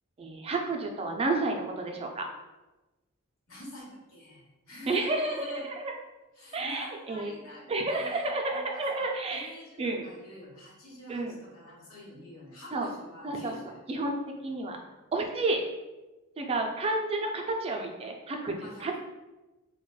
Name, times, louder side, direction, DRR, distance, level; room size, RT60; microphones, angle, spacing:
voice 1, 0.2-2.3 4.9-6.0 6.5-7.3 7.7-9.5 9.8-10.0 11.1-11.4 12.7-12.9 13.2-13.6 13.9-14.1 14.4-14.8 15.1-15.7 16.4-18.9, right 2 dB, 25° right, 2 dB, 0.3 m, -31 dB
voice 2, 3.5-5.6 6.3-13.8 18.5-19.0, left 1 dB, 75° left, -5 dB, 1.3 m, -47 dB
4.5 x 2.1 x 2.3 m, 1.1 s
head